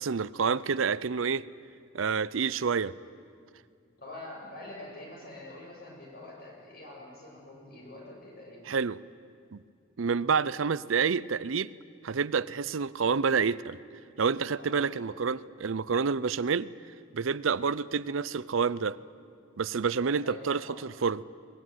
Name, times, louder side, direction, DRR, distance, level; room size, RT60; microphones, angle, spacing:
voice 1, 0.0-1.4 1.9-2.9 8.7-9.0 9.5-9.6 10.0-11.7 12.0-13.8 14.2-16.7 17.1-19.0 19.6-21.2, right 5 dB, 80° right, 18 dB, 0.6 m, -28 dB
voice 2, 4.0-8.6 14.6-15.0 20.2-20.8, left 2 dB, 50° left, -1 dB, 7.2 m, -45 dB
22.0 x 20.5 x 9.3 m, 2.3 s
head